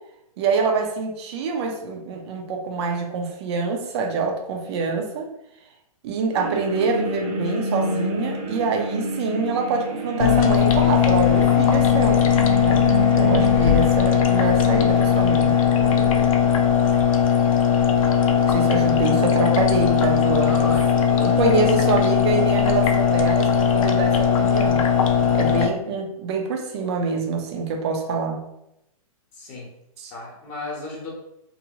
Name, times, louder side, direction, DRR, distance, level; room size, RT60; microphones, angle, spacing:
voice 1, 0.4-5.3 6.0-12.2 12.6-12.8 13.1-15.6 18.4-20.8 21.2-24.8 25.3-28.4 30.0-30.1, right 4 dB, 45° right, 2 dB, 0.6 m, -25 dB
sound 1, 6.3-16.3, equal, 80° right, 0.9 m, -29 dB
sound 2, 10.2-25.7, left 8 dB, 65° left, 0.4 m, -19 dB
voice 2, 20.2-21.9 29.3-29.7 30.1-31.1, left 2 dB, 35° left, -3 dB, 0.9 m, -35 dB
2.7 x 2.1 x 2.8 m, 0.82 s
hypercardioid pair, 140°, 19 cm